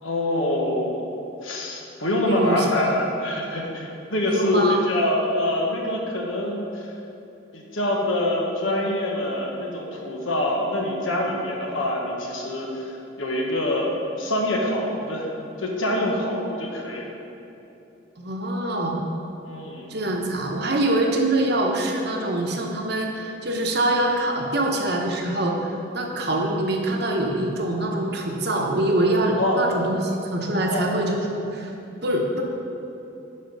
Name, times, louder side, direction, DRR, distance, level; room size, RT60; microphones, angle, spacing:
voice 1, 0.0-1.0 1.4-6.9 7.5-12.9 13.2-13.9 14.2-15.3 15.6-17.1 19.4-19.9 29.4-29.7 30.7-30.9, left 1 dB, 85° left, -1 dB, 1.3 m, -25 dB
voice 2, 2.3-2.9 4.3-4.8 18.2-19.0 19.9-31.7 32.0-32.4, right 1 dB, 55° right, 1 dB, 1.0 m, -24 dB
10.5 x 4.4 x 5.3 m, 2.9 s
head